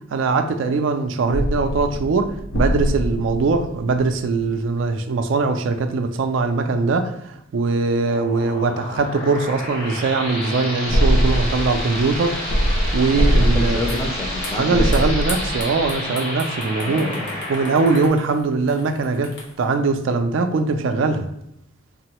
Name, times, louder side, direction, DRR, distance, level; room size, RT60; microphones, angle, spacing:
voice 1, 0.1-12.4 12.9-13.8 14.6-17.1 17.5-21.3, right 4 dB, 65° right, 0.3 m, -21 dB
sound 1, 1.3-4.4 10.9-15.9, equal, 75° left, 0.4 m, -23 dB
sound 2, 8.1-18.1, left 1 dB, 90° left, 1.3 m, -30 dB
voice 2, 13.4-15.0 16.8-17.4, left 1 dB, 15° left, 0.5 m, -29 dB
sound 3, 13.9-14.1 14.4-19.7, left 2 dB, 55° left, 0.8 m, -37 dB
3.6 x 2.0 x 2.9 m
head